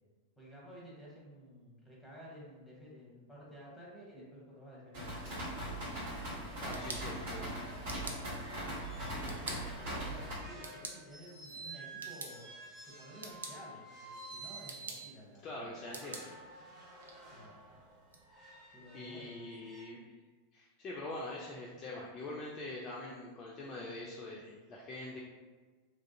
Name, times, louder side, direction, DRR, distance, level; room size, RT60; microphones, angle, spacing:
voice 1, 0.4-6.1 6.5-8.2 8.9-12.5 12.8-16.0 17.3-17.8 18.7-19.7, equal, 5° left, -5 dB, 0.9 m, -53 dB
sound 1, 4.9-10.3, right 1 dB, 55° right, 1.1 m, -40 dB
sound 2, 5.9-15.1 15.8-19.8, right 3 dB, 15° right, 1.2 m, -52 dB
sound 3, 6.4-18.2, right 3 dB, 70° right, 0.4 m, -50 dB
voice 2, 6.6-7.5 15.4-16.3 18.6-20.1 20.5-25.2, left 2 dB, 30° left, -3 dB, 0.4 m, -44 dB
3.0 x 2.4 x 2.6 m, 1.4 s
figure-of-eight pair, 90°, 0 cm